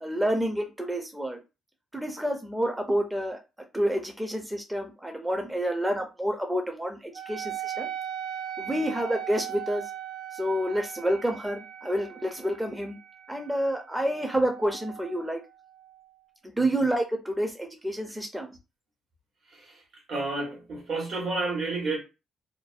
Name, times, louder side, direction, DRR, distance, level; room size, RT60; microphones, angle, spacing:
voice 1, 0.0-1.4 1.9-3.4 3.7-7.9 8.6-9.8 10.3-13.0 13.3-15.4 16.6-18.5, right 1 dB, 10° right, 0.4 m, -28 dB
Wind instrument woodwind instrument, 7.1-16.1, right 10 dB, 90° right, 0.3 m, -39 dB
voice 2, 20.1-22.0, right 3 dB, 60° right, 1.1 m, -30 dB
2.5 x 2.1 x 2.4 m
cardioid pair, 90°, 0 cm